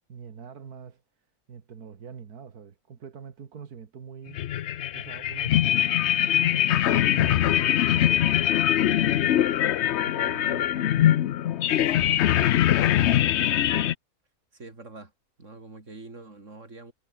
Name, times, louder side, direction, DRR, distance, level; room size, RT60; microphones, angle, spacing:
voice 1, 0.1-1.0 1.5-6.6 7.1-9.7 10.1-11.1 13.0-13.3, right 7 dB, 85° right, 2.1 m, -44 dB
sound 1, 4.3-13.9, left 11 dB, 60° left, 0.8 m, -22 dB
voice 2, 13.1-13.6 14.5-15.1 15.4-16.9, right 3 dB, 55° right, 4.4 m, -45 dB
omnidirectional pair, 1.6 m